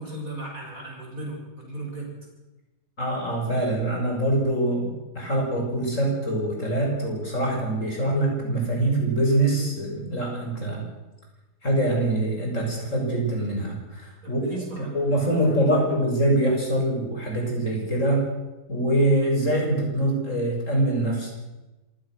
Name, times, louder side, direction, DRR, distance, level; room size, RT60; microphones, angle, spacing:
voice 1, 0.0-2.2 14.2-15.9, right 2 dB, 55° right, -1 dB, 7.3 m, -37 dB
voice 2, 3.0-10.8 11.6-14.4 14.8-18.2 18.7-21.3, right 1 dB, 50° left, 0 dB, 6.8 m, -24 dB
26.5 x 16.5 x 6.5 m, 1.1 s
omnidirectional pair, 1.7 m